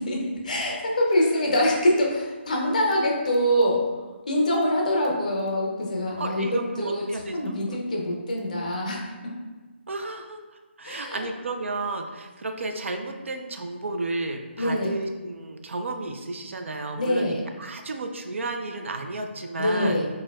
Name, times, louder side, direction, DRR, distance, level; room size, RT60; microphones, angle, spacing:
voice 1, 0.0-3.8 4.3-9.2 10.8-11.3 14.6-14.9 17.0-17.4 19.6-20.1, left 1 dB, 40° left, -1 dB, 0.5 m, -24 dB
voice 2, 6.2-7.6 9.9-10.4 10.8-20.0, right 2 dB, 85° right, 5 dB, 0.4 m, -32 dB
4.2 x 2.2 x 2.3 m, 1.3 s
hypercardioid pair, 175°, 7 cm